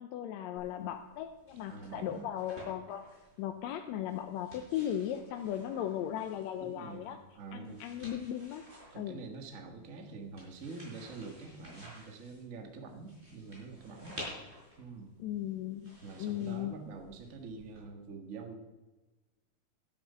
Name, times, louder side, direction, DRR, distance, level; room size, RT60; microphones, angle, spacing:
voice 1, 0.0-3.0 3.4-7.2 7.5-8.6 8.9-9.2 15.2-15.9 16.2-16.7, left 11 dB, 80° left, 6 dB, 1.9 m, -37 dB
sound 1, 0.6-17.8, equal, 20° right, 4.8 m, -53 dB
voice 2, 1.7-2.3 6.6-7.8 8.9-14.2 14.8-15.2 16.0-18.7, right 4 dB, 35° right, 4 dB, 1.3 m, -46 dB
12.5 x 8.9 x 5.5 m, 1.2 s
omnidirectional pair, 3.3 m